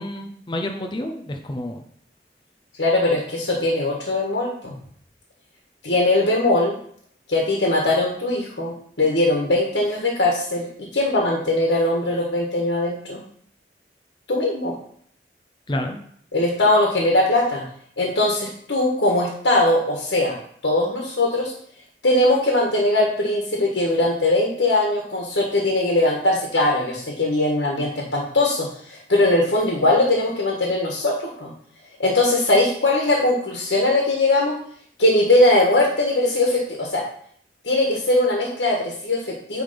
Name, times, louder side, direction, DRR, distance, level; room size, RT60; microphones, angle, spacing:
voice 1, 0.0-1.8 15.7-16.0, left 1 dB, 25° left, 4 dB, 0.6 m, -29 dB
voice 2, 2.8-4.8 5.8-6.7 7.3-10.7 10.9-13.2 14.3-14.7 16.3-17.6 18.0-20.3 20.6-21.5 22.0-31.5 32.0-34.6 35.0-37.0 37.6-39.6, left 2 dB, 85° left, -1 dB, 1.6 m, -20 dB
9.5 x 3.5 x 5.1 m, 0.62 s
head